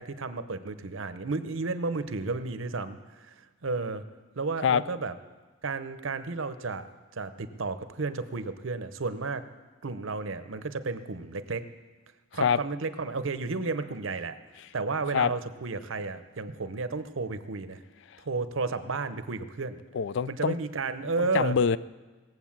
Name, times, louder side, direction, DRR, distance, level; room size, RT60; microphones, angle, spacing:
voice 1, 0.0-3.3 3.6-4.0 4.4-5.1 5.6-6.9 7.2-9.4 9.8-11.7 12.3-14.3 14.7-17.8 18.2-19.8 20.3-21.6, right 3 dB, 70° right, 11 dB, 0.8 m, -32 dB
voice 2, 19.9-20.6 21.2-21.8, left 6 dB, 60° left, 17 dB, 0.3 m, -24 dB
18.5 x 7.9 x 7.3 m, 1.3 s
head